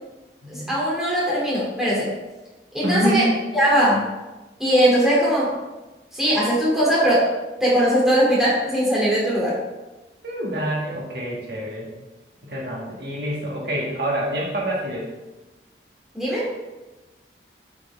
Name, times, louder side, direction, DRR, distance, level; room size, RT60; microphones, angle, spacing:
voice 1, 0.5-2.1 2.7-3.3 3.5-4.1 4.6-5.5 6.1-7.3 7.6-9.6 16.1-16.5, equal, ahead, -7 dB, 2.7 m, -20 dB
voice 2, 2.8-3.3 10.2-11.9 12.4-15.1, equal, 60° right, -4 dB, 1.8 m, -26 dB
8.5 x 6.6 x 3.5 m, 1.1 s
head